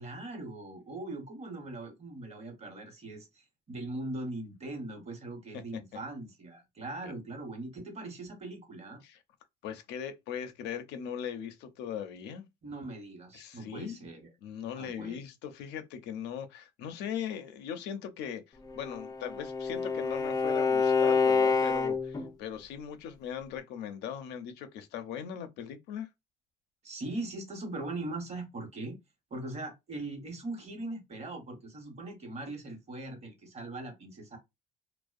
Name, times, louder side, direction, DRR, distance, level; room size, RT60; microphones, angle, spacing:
voice 1, 0.0-9.0 12.6-14.3 14.8-15.2 26.8-29.0 29.3-34.4, right 2 dB, 40° right, 1.0 m, -40 dB
voice 2, 9.6-12.5 13.3-13.9 14.4-26.1, left 8 dB, 90° left, 0.5 m, -39 dB
Bowed string instrument, 18.7-22.3, left 5 dB, 20° left, 0.4 m, -27 dB
2.5 x 2.1 x 2.4 m
cardioid pair, 110°, 17 cm